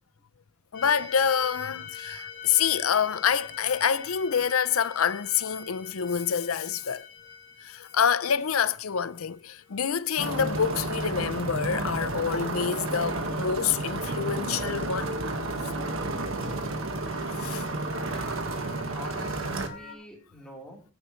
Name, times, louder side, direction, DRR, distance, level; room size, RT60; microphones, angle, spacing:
voice 1, 0.7-7.1 7.6-15.2 17.3-18.2, left 7 dB, 85° left, 0.6 m, -27 dB
sound 1, 0.7-10.3 16.4-19.9, left 6 dB, 40° left, 3.7 m, -45 dB
sound 2, 10.2-19.7, right 2 dB, 70° right, 1.6 m, -31 dB
voice 2, 17.9-18.4 18.8-20.8, equal, 5° left, 3.8 m, -46 dB
15.5 x 9.9 x 3.2 m
head